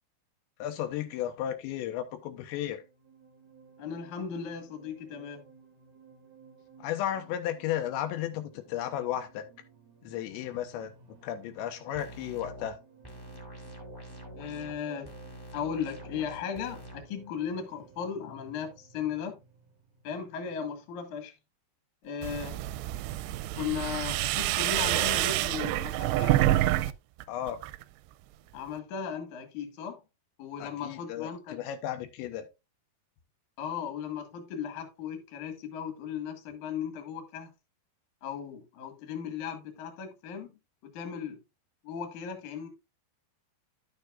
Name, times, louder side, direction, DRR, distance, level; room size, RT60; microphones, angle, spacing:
voice 1, 0.6-2.8 6.8-9.4 10.0-10.9 11.2-12.8 27.3-27.6 30.6-32.5, left 11 dB, 90° left, 3.1 m, -34 dB
sound 1, 2.5-20.9, right 6 dB, 55° right, 1.1 m, -56 dB
voice 2, 3.8-5.4 14.4-15.1 15.5-19.4 20.0-21.3 22.0-22.6 23.6-26.4 28.5-30.0 30.4-31.6 33.6-37.5 38.2-40.5 40.8-41.4 41.8-42.7, left 7 dB, 55° left, 2.7 m, -36 dB
sound 2, 11.9-12.7 13.0-14.8 15.0-17.0, equal, 10° left, 1.5 m, -46 dB
sound 3, 22.2-26.9 27.2-27.8, right 15 dB, 85° right, 2.6 m, -27 dB
12.0 x 6.7 x 2.4 m
omnidirectional pair, 5.1 m